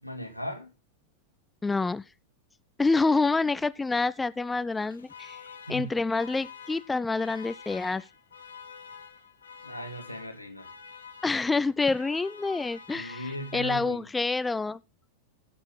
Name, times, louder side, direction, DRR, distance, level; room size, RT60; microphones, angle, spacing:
voice 1, 0.0-0.7 5.7-6.0 9.6-10.7 12.9-14.1, equal, 90° left, 2.2 m, -37 dB
voice 2, 1.6-2.0 2.8-5.4 5.7-8.1 11.2-14.8, left 3 dB, 10° left, 0.5 m, -27 dB
Alarm, 4.7-14.1, left 6 dB, 70° left, 1.8 m, -48 dB
16.5 x 6.9 x 3.8 m
figure-of-eight pair, 90°, 0 cm